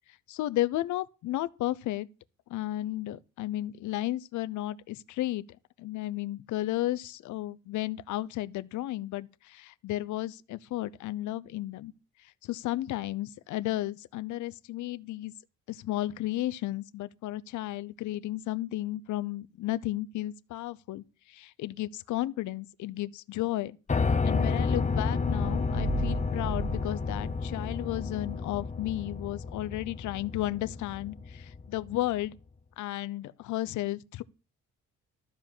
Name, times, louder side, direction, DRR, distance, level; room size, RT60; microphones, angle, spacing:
voice 1, 0.3-2.1 2.5-5.4 5.8-11.9 12.2-15.3 15.7-23.8 24.2-32.4 32.8-34.2, left 15 dB, 75° left, 0.6 m, -33 dB
Piano, 23.9-31.9, left 4 dB, 25° left, 0.9 m, -31 dB
sound 1, 25.3-28.1, right 3 dB, 45° right, 2.2 m, -36 dB
12.5 x 4.9 x 7.4 m
cardioid pair, 90°, 30 cm